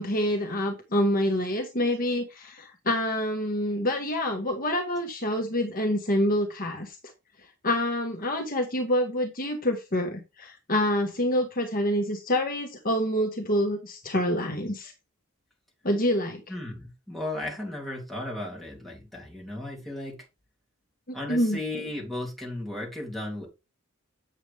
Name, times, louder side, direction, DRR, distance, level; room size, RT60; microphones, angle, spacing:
voice 1, 0.0-7.0 7.6-14.9 15.8-16.4 21.1-21.6, left 1 dB, 40° left, 1.6 m, -27 dB
voice 2, 16.5-20.2 21.1-23.5, left 1 dB, ahead, 3.4 m, -35 dB
9.0 x 7.3 x 3.6 m
head